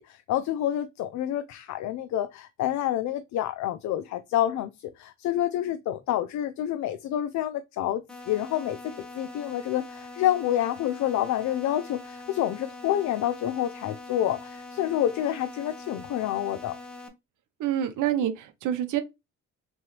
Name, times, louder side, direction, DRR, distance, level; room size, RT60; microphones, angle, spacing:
voice 1, 0.1-8.0 8.3-16.7, left 12 dB, 70° left, 0.5 m, -28 dB
sound 1, 8.1-17.1, left 2 dB, 5° left, 1.1 m, -43 dB
voice 2, 17.6-19.0, right 10 dB, 80° right, 0.8 m, -27 dB
3.8 x 3.1 x 2.9 m
cardioid pair, 90°, 30 cm